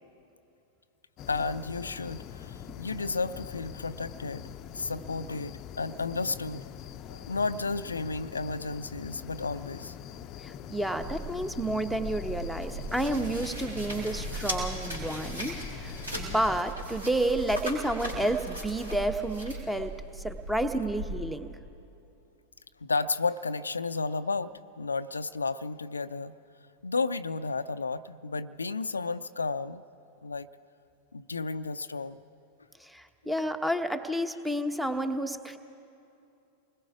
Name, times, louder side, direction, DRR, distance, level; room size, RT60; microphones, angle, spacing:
sound 1, 1.2-16.6, left 9 dB, 35° left, 0.6 m, -44 dB
voice 1, 1.3-6.6 7.1-10.0 22.8-26.3 26.8-29.8 30.2-30.5 31.1-32.2, left 4 dB, 75° left, 13 dB, 0.5 m, -32 dB
voice 2, 10.4-21.6 32.8-35.6, right 1 dB, 5° right, 9 dB, 1.1 m, -30 dB
sound 2, 11.0-21.1, right 1 dB, 80° right, 5.5 m, -38 dB
28.5 x 20.5 x 4.9 m, 2.7 s
figure-of-eight pair, 90°, 0 cm